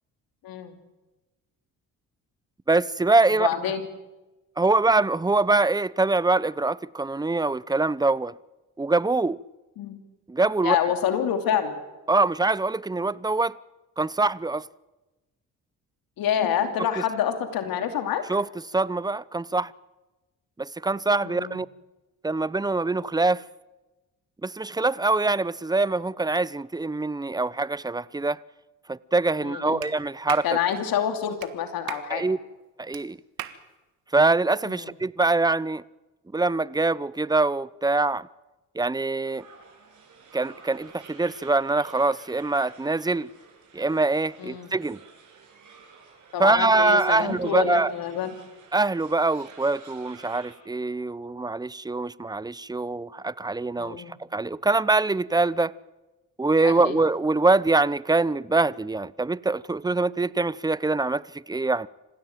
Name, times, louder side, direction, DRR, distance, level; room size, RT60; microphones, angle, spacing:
voice 1, 0.4-0.8 3.4-3.8 9.8-10.0 10.6-11.8 16.2-18.2 21.2-21.6 29.4-29.8 30.4-32.2 34.7-34.9 44.4-44.7 46.3-48.3 53.8-54.2 56.6-57.0, left 9 dB, 75° left, 2.9 m, -27 dB
voice 2, 2.7-3.5 4.6-8.3 8.8-9.4 10.3-10.8 12.1-13.5 14.0-14.7 18.3-18.5 18.7-19.7 20.6-21.7 22.2-23.4 24.4-28.4 28.9-30.4 32.1-32.4 32.8-33.2 34.1-35.8 36.3-38.3 38.7-39.4 40.3-43.3 43.7-45.0 46.4-47.9 48.7-54.0 54.3-55.7 56.4-61.9, right 3 dB, 10° right, 0.7 m, -24 dB
Clapping, 29.8-29.9 30.3-30.5 31.4-31.5 31.9-32.1 32.9-33.0 33.4-33.6, right 13 dB, 80° right, 1.7 m, -36 dB
sound 1, 39.2-50.6, right 5 dB, 55° right, 7.5 m, -51 dB
26.5 x 15.5 x 9.1 m
supercardioid pair, 60°, 36 cm